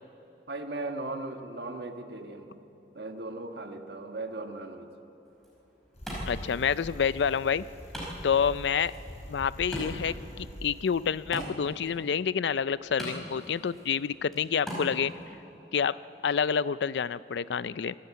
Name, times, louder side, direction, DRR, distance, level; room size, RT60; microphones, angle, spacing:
voice 1, 0.5-2.6 2.9-4.9, right 2 dB, 65° right, 5 dB, 1.4 m, -37 dB
Wood, 5.2-15.2, equal, ahead, 5.0 m, -43 dB
Bicycle, 5.9-11.4, equal, 35° left, 5.0 m, -43 dB
voice 2, 6.3-7.6 8.2-8.9 9.3-15.1 15.7-16.0 16.2-17.9, left 7 dB, 80° left, 17 dB, 0.4 m, -28 dB
26.0 x 12.5 x 8.3 m, 2.9 s
head